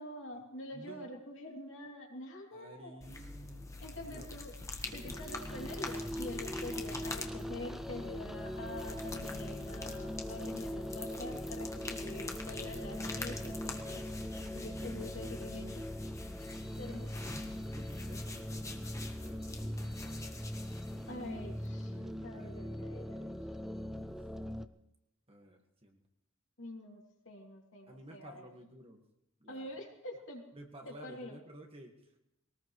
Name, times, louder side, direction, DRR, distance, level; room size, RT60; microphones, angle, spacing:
voice 1, 0.0-2.9 3.8-4.5 4.9-14.0 14.5-15.7 16.8-17.1 21.1-21.9 22.2-23.3 26.6-28.5 29.5-30.4 30.9-31.4, left 1 dB, 60° left, 0 dB, 2.9 m, -46 dB
voice 2, 0.7-1.1 2.5-3.7 4.0-4.3 4.9-5.2 12.0-12.2 14.1-15.4 16.8-19.9 21.9-22.6 23.9-24.2 25.3-26.0 27.9-29.0 29.4-29.7 30.5-32.2, right 1 dB, 25° right, 2 dB, 1.7 m, -53 dB
sound 1, 3.0-21.9, left 2 dB, 15° left, 1.3 m, -45 dB
sound 2, 4.8-24.7, equal, ahead, 0.5 m, -41 dB
22.0 x 18.5 x 3.2 m, 0.82 s
head